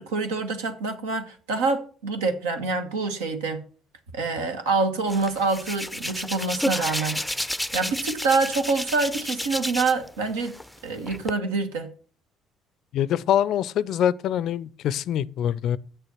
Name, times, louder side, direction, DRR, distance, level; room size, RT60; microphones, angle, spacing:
voice 1, 0.0-3.6 4.1-7.2 7.7-10.5 10.8-11.9, right 3 dB, 75° right, 1.3 m, -26 dB
Hands, 5.1-10.1 10.4-11.3, left 1 dB, ahead, 0.5 m, -31 dB
voice 2, 12.9-15.8, left 10 dB, 60° left, 0.4 m, -24 dB
7.9 x 6.8 x 6.0 m
hypercardioid pair, 55°, 0 cm